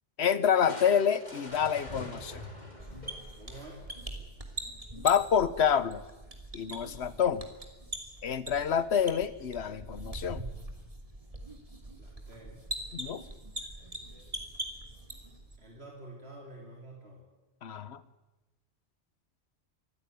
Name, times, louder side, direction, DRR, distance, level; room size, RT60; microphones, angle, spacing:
voice 1, 0.2-2.4 4.9-6.0 6.5-7.4 8.2-10.4 12.9-13.2 17.6-18.0, left 8 dB, 80° left, 16 dB, 1.2 m, -27 dB
Crushing, 0.7-4.1, left 1 dB, 40° left, 3.3 m, -44 dB
sound 1, 2.8-15.6, right 1 dB, 30° right, 3.0 m, -42 dB
voice 2, 3.4-3.8 11.9-12.6 15.6-17.2, right 2 dB, 70° right, -1 dB, 3.8 m, -48 dB
24.5 x 15.5 x 9.4 m, 1.1 s
omnidirectional pair, 1.1 m